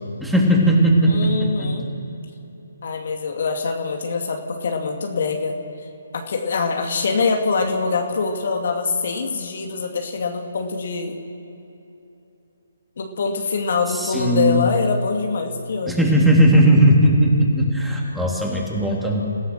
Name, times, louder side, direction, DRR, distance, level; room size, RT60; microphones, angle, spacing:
voice 1, 0.2-1.7 13.9-14.7 15.9-19.2, right 1 dB, ahead, -3 dB, 3.4 m, -17 dB
voice 2, 1.0-1.9 2.8-5.6 6.1-11.2 13.0-16.0, left 4 dB, 55° left, 3 dB, 2.3 m, -24 dB
29.0 x 15.5 x 6.6 m, 3.0 s
figure-of-eight pair, 145°, 0 cm